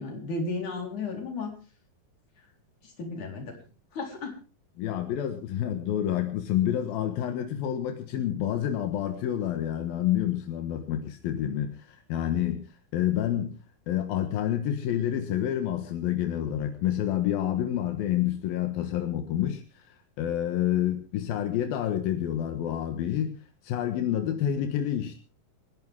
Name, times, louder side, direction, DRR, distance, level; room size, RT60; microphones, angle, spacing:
voice 1, 0.0-1.5 3.0-3.5 3.9-4.3, left 3 dB, 55° left, 2 dB, 5.6 m, -33 dB
voice 2, 4.8-12.7 12.9-13.6 13.9-23.4 23.6-25.2, left 11 dB, 85° left, 6 dB, 3.2 m, -28 dB
28.5 x 11.0 x 3.6 m, 0.34 s
omnidirectional pair, 4.1 m